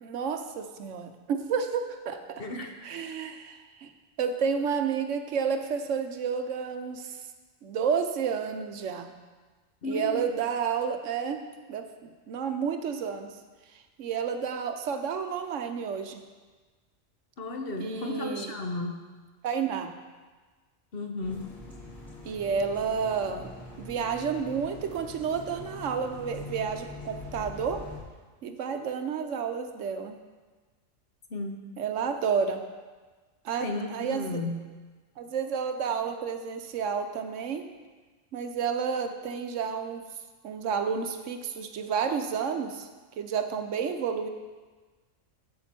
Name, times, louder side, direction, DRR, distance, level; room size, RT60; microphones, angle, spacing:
voice 1, 0.0-2.4 2.8-3.9 4.2-7.2 7.6-9.1 9.8-11.4 11.7-13.3 14.0-16.2 17.8-18.5 19.4-19.9 22.2-23.5 23.8-27.9 28.4-30.2 31.8-32.6 33.4-34.4 35.2-37.7 38.3-40.0 40.4-42.9 43.2-44.3, right 6 dB, 70° right, 7 dB, 1.0 m, -30 dB
voice 2, 2.4-2.8 9.8-10.2 17.4-19.0 20.9-21.5 31.3-31.6 33.6-34.6, left 2 dB, 50° left, 3 dB, 1.0 m, -34 dB
sound 1, 21.2-28.0, left 2 dB, ahead, 2.4 m, -43 dB
10.5 x 7.6 x 4.3 m, 1.3 s
omnidirectional pair, 1.3 m